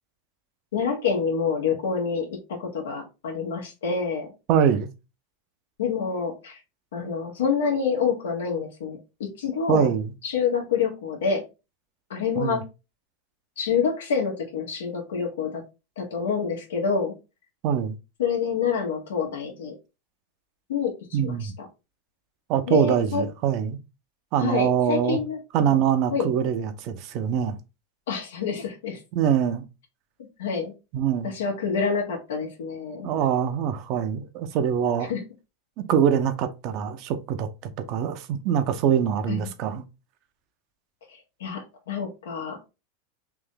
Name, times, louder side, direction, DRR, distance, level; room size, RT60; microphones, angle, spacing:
voice 1, 0.7-4.3 5.8-6.6 6.9-9.9 10.2-11.4 12.1-12.6 13.6-15.6 16.0-17.1 18.2-19.7 20.7-21.7 22.7-23.2 24.4-25.8 26.1-26.3 28.1-29.0 30.4-30.7 31.2-33.1 35.1-35.2 39.3-39.5 41.1-42.6, left 6 dB, 90° left, 1.4 m, -27 dB
voice 2, 4.5-4.9 9.7-10.1 12.4-12.6 17.6-18.0 21.1-21.5 22.5-23.8 24.3-25.2 25.5-27.6 29.1-29.6 30.9-31.3 33.0-35.1 35.9-39.8, right 8 dB, 50° right, 0.6 m, -24 dB
3.4 x 2.6 x 3.8 m
supercardioid pair, 125°, 0 cm